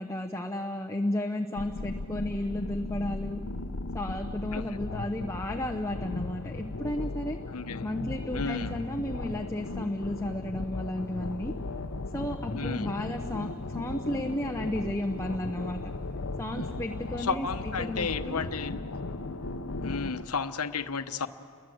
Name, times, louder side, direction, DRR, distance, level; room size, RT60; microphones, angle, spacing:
voice 1, 0.0-3.4 3.9-7.4 7.8-11.5 12.1-15.8 16.4-18.4, left 1 dB, 10° left, 3 dB, 0.9 m, -33 dB
sound 1, 1.6-20.2, left 2 dB, 65° left, 0.8 m, -36 dB
voice 2, 7.5-7.9 8.3-8.7 12.5-12.9 16.6-16.7 17.2-18.8 19.8-21.3, left 5 dB, 85° left, 9 dB, 1.1 m, -33 dB
sound 2, 11.0-18.6, right 1 dB, 10° right, 1.1 m, -53 dB
29.5 x 22.5 x 7.9 m, 2.3 s
head